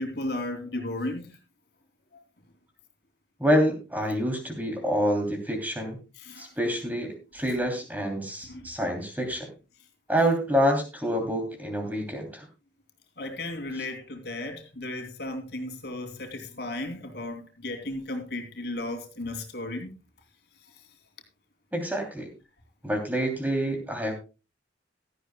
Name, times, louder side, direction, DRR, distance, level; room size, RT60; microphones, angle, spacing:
voice 1, 0.0-1.4 6.2-6.5 8.5-8.6 13.2-20.0, left 2 dB, 60° left, 2.8 m, -34 dB
voice 2, 3.4-6.0 6.4-9.5 10.1-12.5 21.7-22.3 22.8-24.1, equal, 10° right, 2.9 m, -27 dB
16.0 x 13.0 x 2.2 m
head